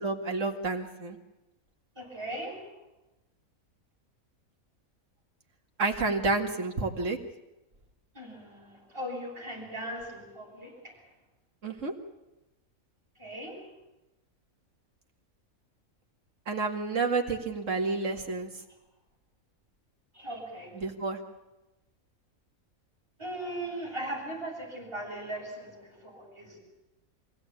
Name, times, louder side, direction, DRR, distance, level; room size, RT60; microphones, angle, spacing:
voice 1, 0.0-1.2 5.8-7.2 11.6-11.9 16.5-18.5 20.7-21.2, right 3 dB, 60° right, 3 dB, 2.4 m, -30 dB
voice 2, 2.0-2.6 8.1-10.9 13.2-13.6 20.1-20.7 23.2-26.6, right 1 dB, 20° right, -4 dB, 7.0 m, -38 dB
24.5 x 16.5 x 8.8 m, 0.98 s
omnidirectional pair, 1.5 m